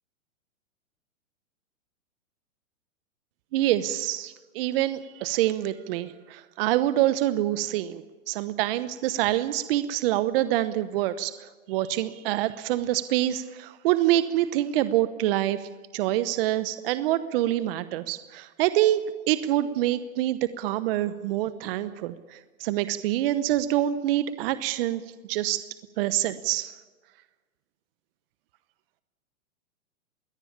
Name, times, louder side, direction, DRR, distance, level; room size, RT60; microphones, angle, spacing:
voice 1, 3.5-25.0 25.3-25.6 26.0-26.7, right 14 dB, 45° right, 13 dB, 1.0 m, -26 dB
22.5 x 17.5 x 8.7 m, 1.3 s
hypercardioid pair, 125°, 41 cm